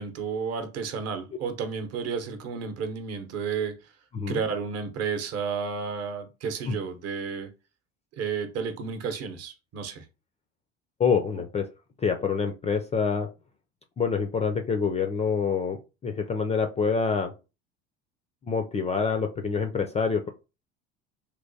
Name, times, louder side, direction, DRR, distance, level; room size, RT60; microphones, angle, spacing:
voice 1, 0.0-3.7 4.3-7.5 8.1-10.1, right 6 dB, 45° right, 0.9 m, -32 dB
voice 2, 11.0-11.7 12.0-13.3 14.0-17.3 18.4-20.3, left 5 dB, 20° left, 0.3 m, -26 dB
3.2 x 3.0 x 2.6 m
hypercardioid pair, 75°, 35 cm